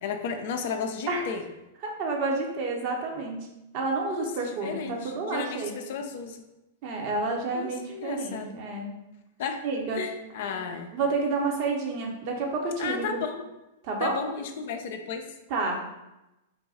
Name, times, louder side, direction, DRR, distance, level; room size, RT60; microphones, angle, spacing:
voice 1, 0.0-1.4 4.1-4.3 4.6-6.4 7.5-8.6 9.4-9.6 9.9-10.9 12.8-13.4 14.0-15.3, left 6 dB, 55° left, 6 dB, 0.4 m, -33 dB
voice 2, 1.8-3.5 3.7-5.7 6.8-8.9 9.6-10.0 10.9-13.2 13.8-14.2 15.5-15.8, right 3 dB, 45° right, 0 dB, 0.8 m, -29 dB
4.0 x 2.3 x 4.1 m, 0.97 s
figure-of-eight pair, 100°, 0 cm